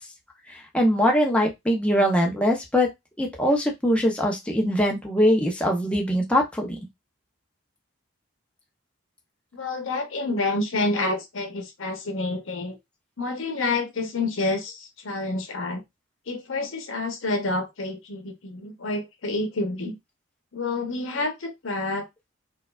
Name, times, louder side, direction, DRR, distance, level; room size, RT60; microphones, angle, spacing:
voice 1, 0.5-2.9 3.2-6.8, equal, 5° left, 0.6 m, -22 dB
voice 2, 9.5-12.8 13.2-15.8 16.3-19.9 20.5-22.1, left 2 dB, 80° left, 0.9 m, -28 dB
4.3 x 2.4 x 2.3 m
head